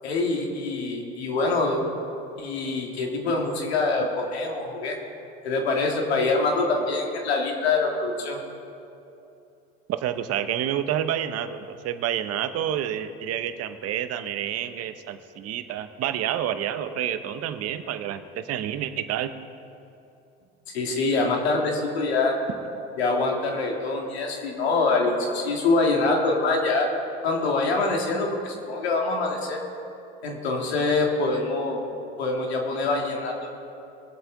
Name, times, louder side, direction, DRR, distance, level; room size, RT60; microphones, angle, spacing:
voice 1, 0.0-1.8 2.4-5.0 5.4-8.4 20.7-22.4 23.0-26.9 27.2-29.6 30.2-31.8 32.2-33.5, left 3 dB, 90° left, 0 dB, 2.2 m, -25 dB
voice 2, 9.9-19.3, right 10 dB, 50° right, 10 dB, 1.0 m, -29 dB
22.0 x 8.0 x 3.9 m, 2.7 s
hypercardioid pair, 80°, 31 cm